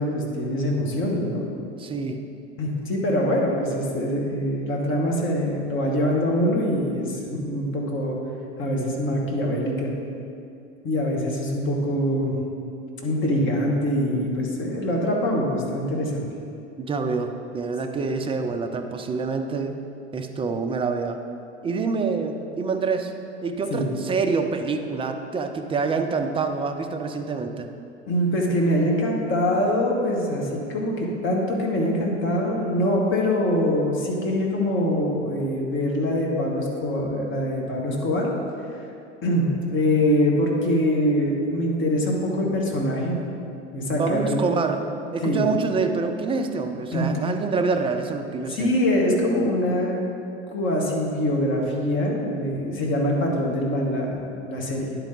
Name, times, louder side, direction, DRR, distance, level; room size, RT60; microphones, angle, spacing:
voice 1, 0.0-1.4 2.6-8.2 8.6-9.9 10.8-12.4 13.0-16.2 23.7-23.9 28.1-38.3 38.7-38.8 39.2-43.2 43.7-44.4 45.2-45.4 46.9-47.1 48.5-50.0 50.5-55.0, left 1 dB, 35° left, -1 dB, 1.5 m, -24 dB
voice 2, 1.8-2.2 16.8-19.8 20.1-21.2 21.6-23.1 23.4-27.7 44.0-44.9 45.1-48.7, right 4 dB, 15° right, 5 dB, 0.4 m, -26 dB
10.0 x 4.6 x 3.9 m, 2.5 s
figure-of-eight pair, 80°, 35 cm